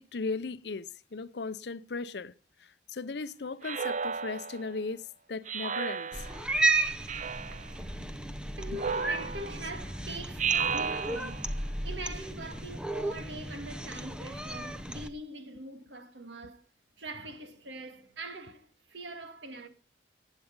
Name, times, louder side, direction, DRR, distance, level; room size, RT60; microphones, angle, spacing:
voice 1, 0.0-2.3 2.6-6.3, left 4 dB, 65° left, 0.6 m, -37 dB
Speech synthesizer, 3.6-4.7 5.5-6.5 7.1-7.7 8.8-9.7 10.4-11.5, right 6 dB, 45° right, 0.6 m, -33 dB
Cat, 6.1-15.1, right 2 dB, 5° right, 0.8 m, -33 dB
voice 2, 7.5-11.6 11.8-16.7 17.0-19.7, right 1 dB, 80° right, 2.1 m, -43 dB
16.0 x 9.1 x 5.3 m
head